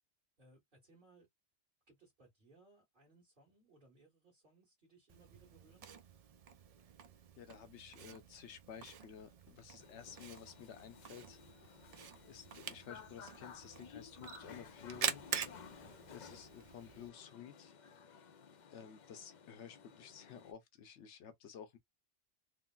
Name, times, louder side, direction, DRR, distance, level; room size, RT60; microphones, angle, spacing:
voice 1, 0.4-1.3 1.9-5.9, right 2 dB, 45° right, 1.7 m, -66 dB
Camera, 5.1-17.1, right 7 dB, 75° right, 0.3 m, -46 dB
voice 2, 7.4-11.4 12.3-15.2 16.1-17.7 18.7-21.8, left 8 dB, 80° left, 1.0 m, -53 dB
sound 1, 9.8-20.5, left 6 dB, 55° left, 0.5 m, -56 dB
3.6 x 2.0 x 2.3 m
omnidirectional pair, 1.2 m